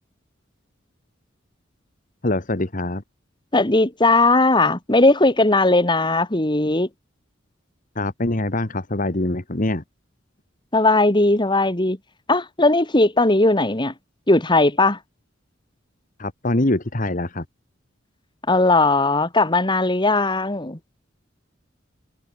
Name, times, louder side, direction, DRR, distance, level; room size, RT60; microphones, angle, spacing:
voice 1, 2.2-3.0 8.0-9.8 16.2-17.4, left 1 dB, 45° left, 1.8 m, -24 dB
voice 2, 3.5-6.9 10.7-12.0 12.3-13.9 14.3-15.0 18.5-20.8, left 2 dB, 25° left, 2.4 m, -18 dB
head